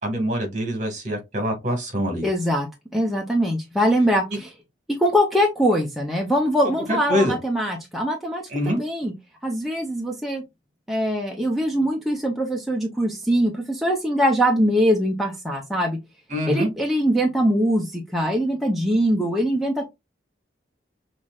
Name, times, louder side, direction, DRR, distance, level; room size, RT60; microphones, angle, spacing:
voice 1, 0.0-2.3 6.9-7.3 8.5-8.8 16.3-16.7, equal, 40° right, 1.7 m, -24 dB
voice 2, 2.2-4.5 5.0-9.1 9.4-10.4 10.9-16.0 16.5-19.9, equal, ahead, 0.7 m, -22 dB
5.8 x 3.2 x 2.3 m
head